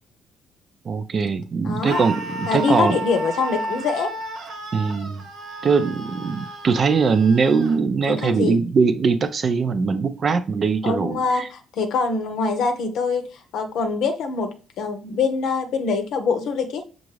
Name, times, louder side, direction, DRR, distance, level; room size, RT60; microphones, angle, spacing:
voice 1, 0.8-3.0 4.7-5.2 5.6-11.5, right 5 dB, 45° right, 0.5 m, -21 dB
voice 2, 1.6-2.0 2.5-4.2 8.2-8.6 10.8-13.3 13.5-16.8, left 4 dB, 70° left, 0.7 m, -24 dB
Screaming, 1.8-7.8, right 2 dB, 70° right, 1.2 m, -33 dB
5.9 x 2.5 x 3.2 m
hypercardioid pair, 50°, 0 cm